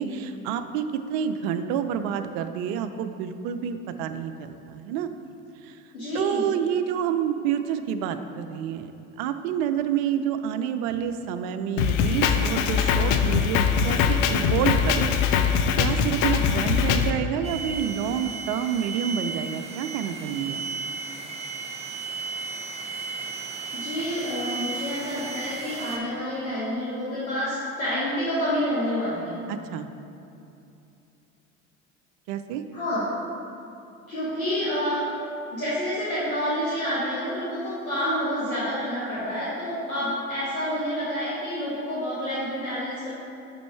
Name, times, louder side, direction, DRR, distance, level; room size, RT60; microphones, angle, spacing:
voice 1, 0.0-5.1 5.6-5.8 6.1-8.9 9.2-15.3 15.8-20.6 29.5-29.9 32.3-32.6, right 9 dB, 55° right, 9 dB, 0.5 m, -28 dB
voice 2, 5.9-6.5 23.7-29.4 32.7-33.0 34.1-35.0 35.5-43.1, equal, 85° left, -11 dB, 1.4 m, -28 dB
Drum kit, 11.8-17.1, left 7 dB, 55° left, 0.5 m, -22 dB
sound 1, 17.4-26.0, right 4 dB, 15° right, 0.8 m, -35 dB
5.3 x 5.2 x 4.4 m, 2.7 s
figure-of-eight pair, 65°, 41 cm